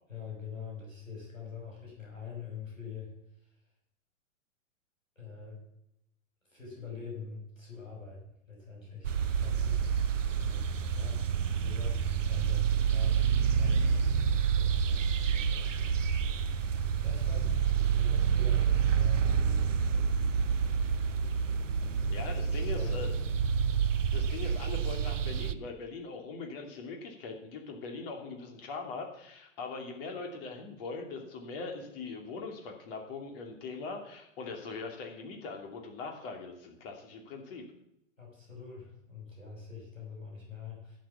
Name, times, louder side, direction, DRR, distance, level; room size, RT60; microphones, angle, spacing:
voice 1, 0.1-3.1 3.4-3.5 5.2-5.6 6.5-17.7 17.9-20.1 20.4-20.9 21.8-23.2 38.2-41.0, left 6 dB, 85° left, -2 dB, 5.8 m, -45 dB
sound 1, 9.0-25.5, right 7 dB, 70° right, 0.8 m, -28 dB
voice 2, 22.1-23.1 24.1-37.6, left 4 dB, 45° left, 3 dB, 3.0 m, -41 dB
11.5 x 7.5 x 7.0 m, 0.79 s
figure-of-eight pair, 105°, 39 cm